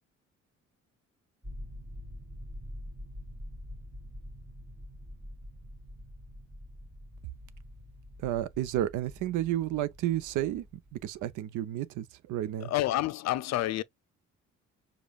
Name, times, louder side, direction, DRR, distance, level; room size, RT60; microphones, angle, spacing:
sound 1, 1.4-11.3, left 1 dB, 20° right, 1.0 m, -46 dB
voice 1, 8.2-10.6 11.0-12.7, right 13 dB, 85° right, 0.6 m, -31 dB
voice 2, 12.6-13.8, left 14 dB, 60° left, 0.4 m, -29 dB
5.1 x 2.3 x 2.3 m
cardioid pair, 90°, 30 cm